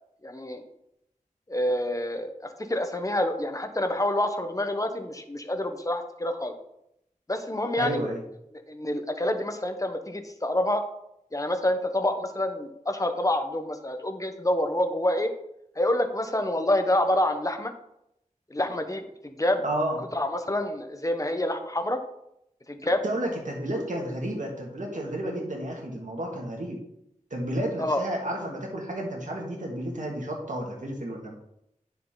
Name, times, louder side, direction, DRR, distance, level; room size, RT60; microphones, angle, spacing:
voice 1, 0.2-0.6 1.5-2.3 2.7-6.5 7.3-8.0 8.7-10.8 11.3-15.3 15.8-17.7 18.5-19.6 20.1-22.0 22.7-23.0 27.8-28.0, left 1 dB, 25° left, 6 dB, 1.1 m, -27 dB
voice 2, 7.8-8.2 19.6-20.0 23.0-26.8 27.3-31.3, right 1 dB, 65° right, -1 dB, 2.4 m, -31 dB
9.6 x 6.9 x 4.0 m, 0.79 s
wide cardioid pair, 65°, 14 cm